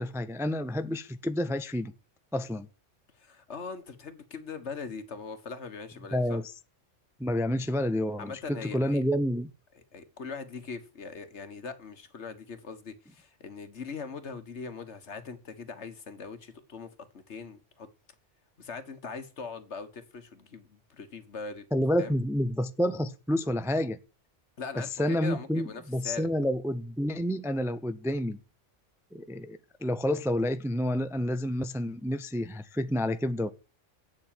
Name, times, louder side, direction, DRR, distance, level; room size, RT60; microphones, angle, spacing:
voice 1, 0.0-1.9 2.3-2.7 6.1-6.4 7.2-9.5 21.7-24.0 24.8-28.4 29.1-33.5, left 1 dB, 5° right, 0.5 m, -29 dB
voice 2, 3.1-6.4 8.2-9.0 9.7-17.9 18.6-21.6 22.0-22.1 24.6-26.3, left 4 dB, 65° left, 1.7 m, -41 dB
8.5 x 7.5 x 8.9 m
omnidirectional pair, 1.2 m